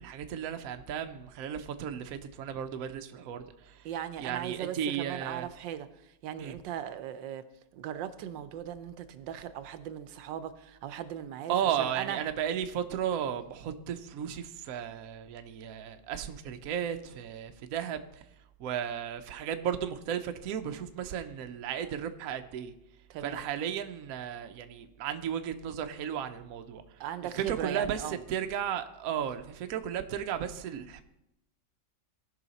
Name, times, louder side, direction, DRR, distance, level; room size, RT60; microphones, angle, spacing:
voice 1, 0.0-3.9 4.2-5.5 6.4-6.6 11.5-18.2 18.6-22.7 23.2-26.8 27.4-31.0, right 9 dB, 65° right, 7 dB, 1.0 m, -34 dB
voice 2, 3.8-5.9 6.2-7.4 7.7-12.2 23.1-23.4 27.0-28.2, right 10 dB, 85° right, 12 dB, 1.3 m, -38 dB
16.5 x 5.7 x 4.0 m, 0.84 s
omnidirectional pair, 1.9 m